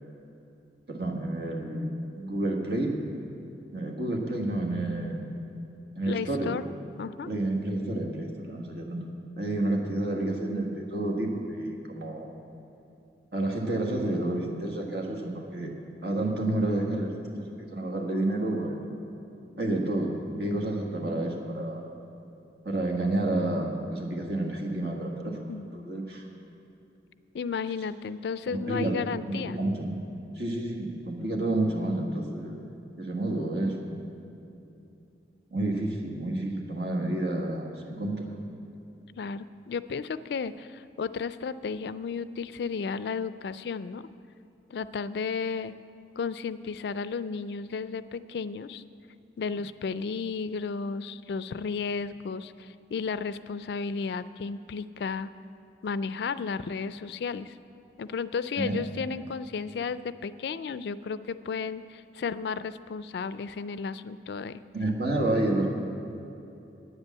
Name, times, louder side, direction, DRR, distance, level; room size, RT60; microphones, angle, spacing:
voice 1, 0.9-1.9 2.2-2.9 3.7-5.2 6.0-6.5 7.3-9.0 9.4-12.3 13.3-15.7 16.0-18.8 19.6-21.8 22.6-26.2 28.5-29.0 29.3-30.0 30.3-32.7 32.9-33.8 35.5-38.3 58.6-58.8 64.7-65.7, right 1 dB, 65° right, 0 dB, 1.5 m, -30 dB
voice 2, 6.1-6.6 7.0-7.3 25.5-25.7 27.3-29.6 39.2-44.1 44.7-45.7 46.2-48.8 49.4-55.3 55.8-57.5 58.0-64.6, left 5 dB, 65° left, 15 dB, 0.3 m, -33 dB
9.7 x 8.1 x 8.2 m, 2.8 s
head